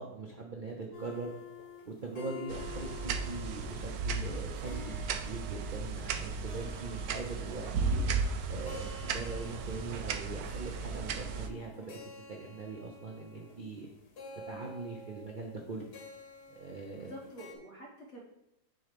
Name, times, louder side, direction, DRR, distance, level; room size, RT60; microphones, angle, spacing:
voice 1, 0.0-1.3 1.9-4.9 5.2-8.0 8.5-12.0 12.3-13.9 14.5-15.8 16.5-17.1, right 3 dB, 50° right, 0 dB, 0.6 m, -41 dB
sound 1, 0.9-17.5, left 4 dB, 70° left, 1.7 m, -50 dB
sound 2, 2.5-11.5, right 4 dB, 70° right, 1.0 m, -35 dB
voice 2, 16.9-18.2, equal, 50° left, -3 dB, 1.4 m, -47 dB
7.6 x 3.2 x 5.1 m, 0.88 s
omnidirectional pair, 1.8 m